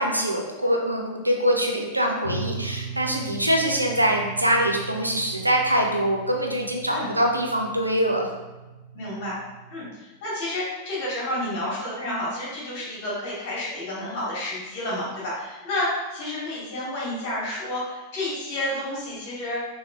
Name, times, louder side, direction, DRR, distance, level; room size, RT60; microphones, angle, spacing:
voice 1, 0.0-8.3, equal, 85° right, 1 dB, 0.4 m, -23 dB
sound 1, 2.2-9.9, right 4 dB, 75° left, 0.3 m, -38 dB
voice 2, 8.9-9.4 9.7-19.7, left 1 dB, 50° left, -7 dB, 1.5 m, -30 dB
3.0 x 2.9 x 2.3 m, 1.1 s
figure-of-eight pair, 90°, 0 cm